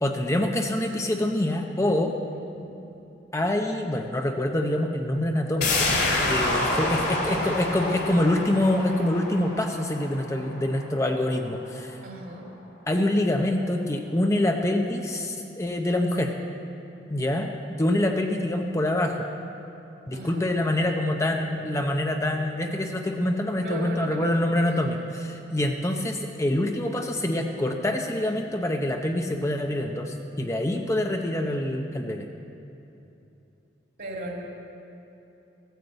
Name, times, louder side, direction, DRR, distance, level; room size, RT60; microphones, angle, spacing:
voice 1, 0.0-2.1 3.3-5.9 6.3-12.0 12.9-16.3 17.1-17.5 17.8-19.3 20.1-32.3, left 1 dB, 15° left, 3 dB, 0.7 m, -25 dB
voice 2, 2.3-2.8 6.4-7.6 12.0-12.5 20.1-21.9 22.3-22.5 23.6-24.6 34.0-34.4, right 1 dB, 55° right, -1 dB, 2.7 m, -38 dB
sound 1, 5.6-11.1 11.4-11.5, left 2 dB, 60° left, 2.9 m, -28 dB
15.0 x 9.3 x 7.9 m, 2.9 s
head